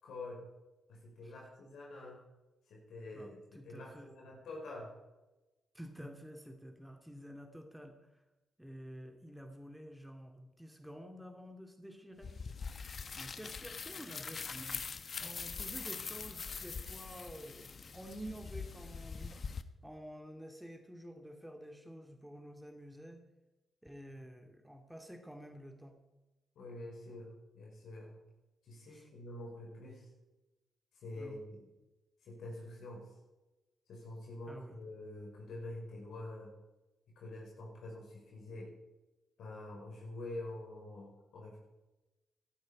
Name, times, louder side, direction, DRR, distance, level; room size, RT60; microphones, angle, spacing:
voice 1, 0.0-0.5 0.9-2.2 2.7-4.9 26.6-28.2 28.6-30.1 31.0-31.7 32.2-33.1 33.9-36.5 37.2-38.7 39.4-41.6, left 2 dB, 70° left, -2 dB, 5.3 m, -46 dB
voice 2, 3.1-4.1 5.7-8.2 8.6-12.3 13.2-14.9 15.2-19.4 19.8-23.2 23.8-26.0 28.9-29.1 31.2-31.4 34.5-34.8, equal, 5° right, 4 dB, 2.3 m, -50 dB
sound 1, 12.2-19.6, left 5 dB, 50° left, 1.0 m, -43 dB
18.0 x 12.0 x 5.0 m, 1.1 s
hypercardioid pair, 45°, 0 cm